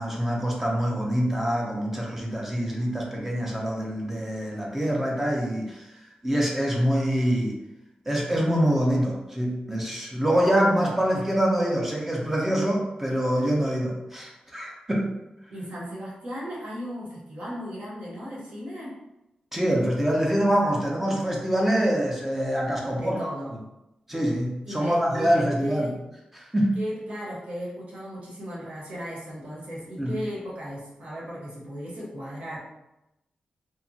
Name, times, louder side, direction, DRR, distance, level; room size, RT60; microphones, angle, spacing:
voice 1, 0.0-7.6 8.1-15.1 19.5-23.2 24.1-25.9 26.3-26.8 30.0-30.1, equal, 10° right, -2 dB, 0.5 m, -25 dB
voice 2, 15.5-18.9 22.7-23.5 24.6-26.0 26.7-32.6, equal, 60° right, -5 dB, 1.0 m, -36 dB
2.8 x 2.2 x 2.6 m, 0.92 s
wide cardioid pair, 125°, 3 cm